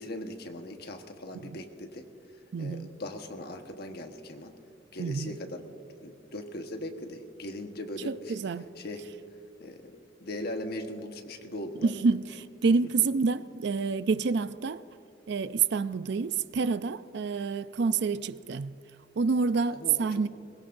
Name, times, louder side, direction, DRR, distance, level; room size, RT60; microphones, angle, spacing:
voice 1, 0.0-2.0 2.3-4.5 4.9-5.6 5.9-8.4 8.8-9.0 9.6-9.9 10.2-12.0 19.7-20.2, left 1 dB, 60° left, 1.3 m, -39 dB
voice 2, 2.5-2.9 5.0-5.4 8.1-8.7 11.8-14.8 15.3-18.8 19.2-20.3, right 4 dB, 65° right, 0.4 m, -28 dB
22.5 x 20.5 x 2.6 m
head